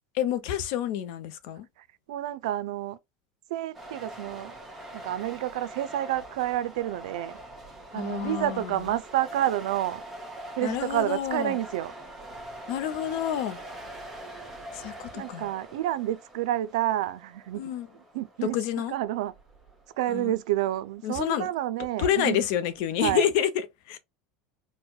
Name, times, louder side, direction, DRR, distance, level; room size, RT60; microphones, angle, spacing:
voice 1, 0.1-1.7 7.9-8.8 10.6-11.6 12.7-13.6 14.7-15.5 17.5-17.9 18.4-19.0 20.1-20.3 21.0-21.5 22.0-24.0, left 10 dB, 65° left, 0.5 m, -28 dB
voice 2, 2.1-3.0 3.5-4.5 4.9-7.4 7.9-10.0 10.6-11.9 15.1-17.6 18.1-18.6 18.9-19.3 20.0-22.4 23.0-23.3, right 13 dB, 90° right, 0.4 m, -29 dB
sound 1, 3.7-23.4, right 1 dB, 5° right, 0.9 m, -44 dB
4.4 x 2.1 x 2.2 m
supercardioid pair, 150°, 3 cm